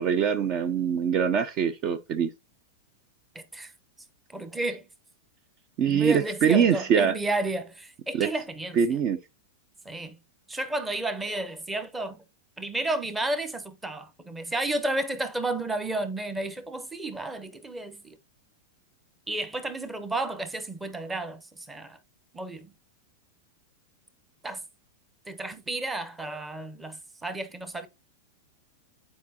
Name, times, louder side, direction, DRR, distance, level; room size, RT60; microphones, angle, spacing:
voice 1, 0.0-2.3 5.8-7.1 8.2-8.3 8.8-9.2, right 7 dB, 40° right, 0.5 m, -23 dB
voice 2, 3.3-3.7 4.3-4.9 5.9-8.8 9.8-10.2 10.5-12.2 12.6-18.2 19.3-22.0 22.3-22.7 24.4-24.6 25.3-27.9, right 2 dB, 10° right, 0.8 m, -32 dB
8.3 x 4.7 x 2.8 m
supercardioid pair, 145°, 0 cm